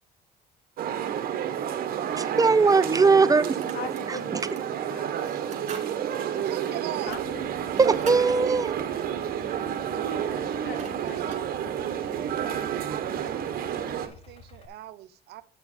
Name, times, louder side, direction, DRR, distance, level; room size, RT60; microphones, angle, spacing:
sound 1, 0.8-14.1, right 9 dB, 60° right, 1.1 m, -30 dB
voice 1, 2.1-3.5 4.1-4.2 7.8-8.8, right 4 dB, 20° right, 0.5 m, -20 dB
sound 2, 3.4-4.1 4.4-4.7 5.2-5.9 6.3-6.4 7.0-8.3 10.3-10.4 10.6-11.5, right 5 dB, 45° right, 2.9 m, -44 dB
voice 2, 3.7-5.6 5.9-6.8 7.0-7.5 8.9-9.4 9.8-11.9, left 5 dB, 70° left, 1.4 m, -43 dB
voice 3, 6.2-7.2 7.9-8.1 8.5-9.3 9.9-10.7 11.0-11.4 12.9-15.4, right 14 dB, 75° right, 0.7 m, -42 dB
Idling, 7.1-14.7, left 4 dB, 35° left, 1.3 m, -50 dB
9.1 x 6.1 x 4.9 m
cardioid pair, 110°, 17 cm